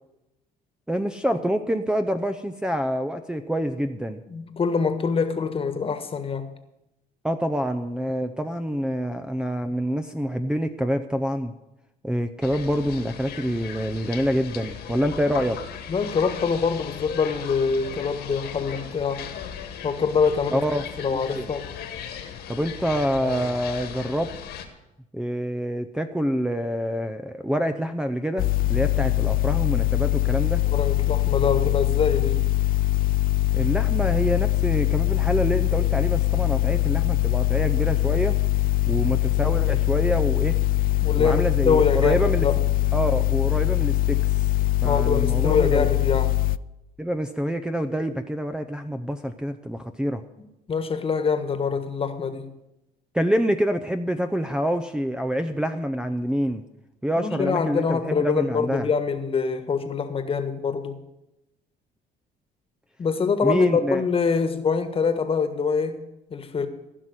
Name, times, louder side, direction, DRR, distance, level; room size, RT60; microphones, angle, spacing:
voice 1, 0.9-4.2 7.2-11.5 12.0-15.6 20.5-21.5 22.5-24.3 25.1-30.6 33.5-38.4 38.9-40.6 41.2-42.5 42.9-44.2 44.8-45.9 47.0-50.2 53.1-56.6 57.0-58.9 63.4-64.0, equal, 5° right, 0.7 m, -26 dB
voice 2, 4.3-6.5 15.9-19.3 19.8-21.7 30.7-32.4 41.0-42.6 44.8-46.3 50.7-52.5 57.2-61.0 63.0-66.0 66.3-66.7, left 5 dB, 35° left, 1.5 m, -24 dB
sound 1, 12.4-24.7, left 9 dB, 75° left, 1.9 m, -37 dB
sound 2, 28.4-46.6, left 16 dB, 60° left, 0.4 m, -22 dB
15.5 x 6.1 x 9.7 m
cardioid pair, 110°, 17 cm